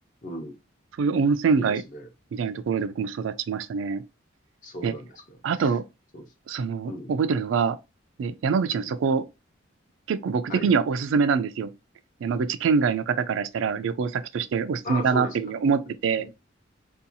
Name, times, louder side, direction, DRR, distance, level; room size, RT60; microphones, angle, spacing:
voice 1, 0.2-0.6 1.6-2.1 4.6-5.8 6.1-6.2 6.8-7.1 8.7-9.0 10.5-10.7 14.8-15.5 16.2-16.3, left 1 dB, 45° left, 0.7 m, -37 dB
voice 2, 1.0-1.8 2.3-4.0 4.8-4.9 5.4-5.8 6.5-7.8 8.2-9.2 10.1-11.7 12.2-16.3, right 5 dB, 80° right, 0.3 m, -24 dB
2.7 x 2.3 x 2.6 m
head